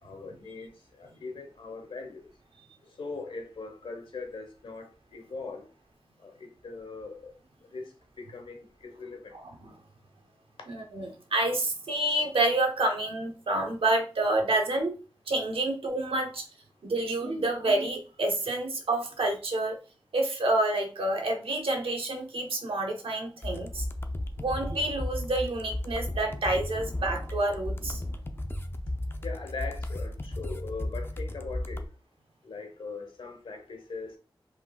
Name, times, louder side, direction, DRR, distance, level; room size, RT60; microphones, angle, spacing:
voice 1, 0.0-2.3 2.8-5.7 6.2-7.3 7.6-9.3 29.2-31.9 32.4-34.2, left 4 dB, 80° left, 1.2 m, -41 dB
voice 2, 9.3-9.8 10.7-14.9 15.3-16.4 16.8-19.8 20.1-23.9 24.4-28.0, right 2 dB, 85° right, 1.1 m, -28 dB
sound 1, 23.4-31.9, left 1 dB, 25° left, 0.6 m, -35 dB
5.1 x 3.7 x 2.4 m
wide cardioid pair, 65°, 9 cm